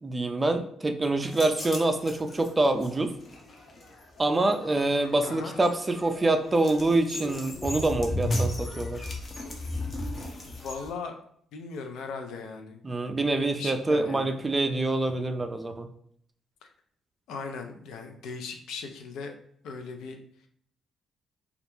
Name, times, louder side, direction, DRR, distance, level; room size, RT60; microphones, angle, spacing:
voice 1, 0.0-3.1 4.2-9.0 12.8-15.9, right 2 dB, 20° right, 6 dB, 0.3 m, -26 dB
sound 1, 1.2-10.9, left 1 dB, 45° left, 0.6 m, -36 dB
voice 2, 5.2-5.6 10.5-11.2 11.5-12.8 13.6-14.3 16.6-16.7 17.3-19.4 19.6-20.2, left 4 dB, 85° left, 5 dB, 0.4 m, -38 dB
2.3 x 2.1 x 3.0 m, 0.65 s
cardioid pair, 90°, 0 cm